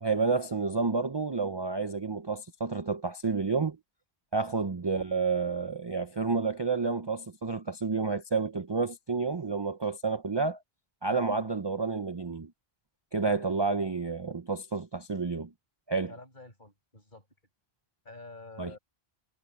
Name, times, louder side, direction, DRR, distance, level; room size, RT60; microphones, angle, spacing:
voice 1, 0.0-3.8 4.3-10.6 11.0-12.5 13.1-15.5 15.9-16.1 18.6-18.7, right 4 dB, 30° right, 0.6 m, -30 dB
voice 2, 13.2-13.6 16.1-17.3 18.0-18.8, left 2 dB, 50° left, 7.9 m, -48 dB
omnidirectional pair, 1.1 m